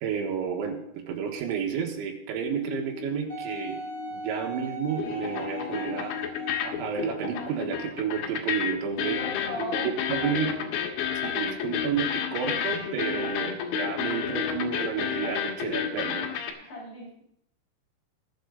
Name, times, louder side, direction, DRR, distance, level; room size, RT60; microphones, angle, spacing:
voice 1, 0.0-3.8 4.1-6.2 6.6-9.2 9.8-10.5 11.2-16.4, right 7 dB, 85° right, 1 dB, 3.8 m, -31 dB
sound 1, 2.4-4.6 4.9-16.5, left 8 dB, 85° left, 3.8 m, -31 dB
Wind instrument woodwind instrument, 3.3-7.6 8.3-8.4, right 3 dB, 20° left, 3.7 m, -40 dB
voice 2, 9.2-10.7 16.6-17.2, equal, 40° left, -4 dB, 6.4 m, -37 dB
20.5 x 7.7 x 4.0 m, 0.72 s
omnidirectional pair, 5.2 m